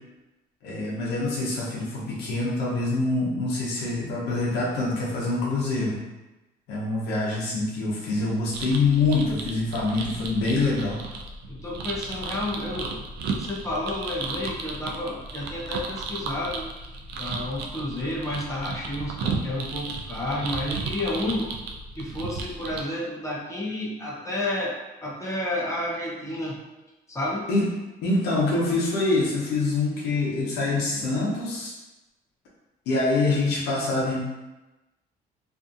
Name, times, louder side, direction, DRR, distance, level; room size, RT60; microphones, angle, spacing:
voice 1, 0.6-6.0 6.7-11.0 27.5-27.6 28.0-31.7 32.9-34.2, left 3 dB, 90° left, -5 dB, 0.7 m, -25 dB
sound 1, 8.5-22.8, right 4 dB, 75° right, 0.4 m, -34 dB
voice 2, 11.5-16.7 17.1-21.5 21.9-26.6 27.1-27.5, left 1 dB, 20° left, -5 dB, 0.6 m, -31 dB
2.6 x 2.5 x 2.4 m, 1.0 s
cardioid pair, 110°, 17 cm